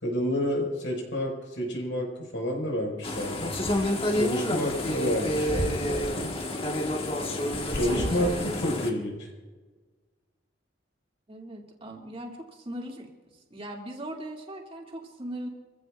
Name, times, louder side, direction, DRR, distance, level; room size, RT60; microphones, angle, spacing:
voice 1, 0.0-3.5 4.1-6.3 7.7-9.3, equal, 90° left, 0 dB, 5.4 m, -29 dB
sound 1, 3.0-8.9, left 1 dB, 30° left, 1.6 m, -29 dB
voice 2, 7.8-8.4 11.3-15.5, right 1 dB, 30° right, -1 dB, 2.5 m, -39 dB
26.0 x 15.0 x 2.5 m, 1.4 s
head